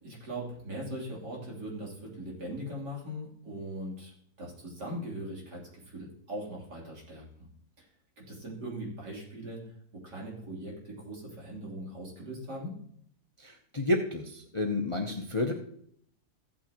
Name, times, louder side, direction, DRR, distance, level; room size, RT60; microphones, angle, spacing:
voice 1, 0.0-4.1 4.4-7.5 7.8-7.9 8.2-9.6 9.9-12.8, right 1 dB, 80° right, -4 dB, 3.7 m, -40 dB
voice 2, 13.4-15.5, left 2 dB, 30° left, 3 dB, 0.5 m, -30 dB
15.0 x 8.7 x 2.9 m, 0.66 s
omnidirectional pair, 1.7 m